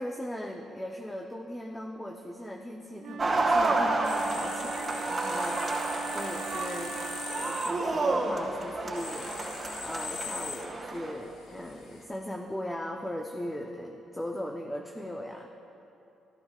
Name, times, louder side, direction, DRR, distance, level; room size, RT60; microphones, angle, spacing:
voice 1, 0.0-9.3 9.8-15.5, left 1 dB, 15° left, 1 dB, 0.7 m, -38 dB
Wind instrument woodwind instrument, 3.0-7.8, right 9 dB, 75° right, 0.4 m, -42 dB
sound 1, 3.2-11.1, right 2 dB, 25° right, 2.7 m, -30 dB
sound 2, 4.0-12.0, left 4 dB, 75° left, 1.2 m, -42 dB
14.5 x 14.0 x 2.4 m, 2.8 s
cardioid pair, 90°, 0 cm